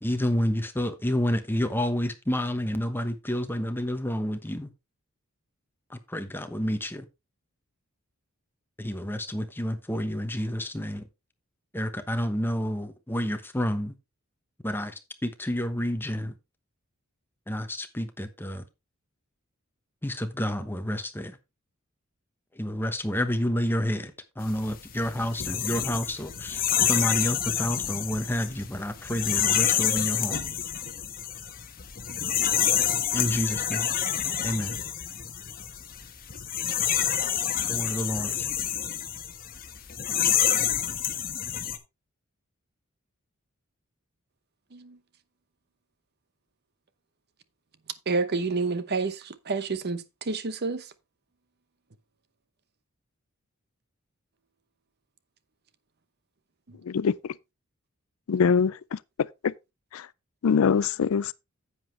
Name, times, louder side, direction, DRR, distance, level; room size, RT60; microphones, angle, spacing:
voice 1, 0.0-4.7 5.9-7.0 8.8-11.0 11.7-13.9 14.6-16.3 17.5-18.6 20.0-21.4 22.5-26.6 26.9-30.4 33.1-33.9 34.4-34.7 37.7-38.5, equal, 10° left, 1.1 m, -29 dB
sound 1, 24.5-41.8, left 9 dB, 45° left, 1.2 m, -28 dB
voice 2, 48.1-50.9 56.7-56.8, right 4 dB, 50° right, 0.8 m, -29 dB
voice 3, 56.8-57.3 58.3-59.0 59.4-59.5 59.9-60.1 60.4-61.3, left 6 dB, 75° left, 0.4 m, -23 dB
10.0 x 7.9 x 3.2 m
head